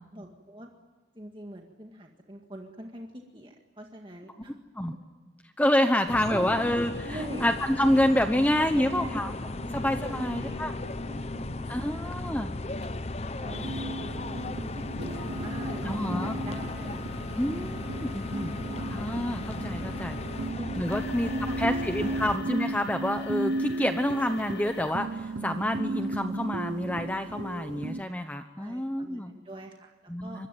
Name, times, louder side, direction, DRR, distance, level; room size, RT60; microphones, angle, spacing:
voice 1, 0.1-0.7 1.2-4.6 5.9-6.0 6.3-6.5 7.0-7.5 8.6-9.2 9.5-9.8 10.1-12.1 13.4-14.1 14.3-17.1 18.4-18.9 20.3-21.7 22.1-22.2 28.6-30.4, right 1 dB, 25° right, 1 dB, 1.9 m, -42 dB
voice 2, 5.6-9.3 9.7-10.7 11.7-12.5 15.8-16.3 17.4-18.5 18.9-20.2 20.8-21.3 21.6-29.3 30.1-30.5, left 1 dB, 10° left, 7 dB, 0.9 m, -28 dB
sound 1, 6.1-22.4, left 2 dB, 35° left, 0.9 m, -36 dB
sound 2, 12.8-12.9 13.6-13.8 15.0-25.9 26.4-26.5 27.1-27.3, left 4 dB, 70° left, 1.7 m, -49 dB
sound 3, 13.5-28.0, right 2 dB, 70° right, 0.8 m, -35 dB
26.0 x 22.0 x 9.2 m, 1.3 s
head